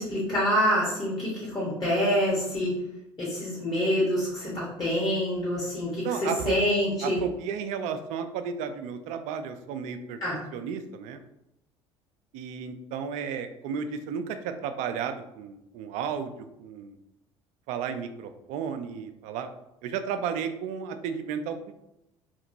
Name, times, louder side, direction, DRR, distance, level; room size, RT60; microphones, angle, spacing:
voice 1, 0.0-2.8 3.2-7.2 10.2-10.4, equal, 30° left, -6 dB, 1.2 m, -26 dB
voice 2, 6.0-6.6 7.0-10.2 10.5-11.2 12.3-16.3 16.6-17.0 17.7-19.5 19.8-21.7, right 7 dB, 55° right, 8 dB, 0.4 m, -33 dB
2.9 x 2.8 x 2.6 m, 0.87 s
figure-of-eight pair, 60°, 15 cm